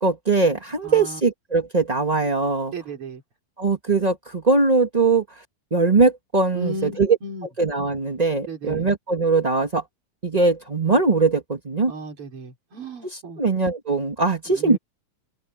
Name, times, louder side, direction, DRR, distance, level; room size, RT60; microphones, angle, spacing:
voice 1, 0.0-2.7 3.6-5.4 5.7-7.2 7.6-9.8 10.2-11.9 13.0-14.8, right 3 dB, 25° right, 0.9 m, -21 dB
voice 2, 0.8-1.2 2.7-3.2 6.5-7.5 8.5-8.9 11.9-13.4 14.5-14.8, right 2 dB, 45° right, 5.1 m, -34 dB
open air
omnidirectional pair, 3.4 m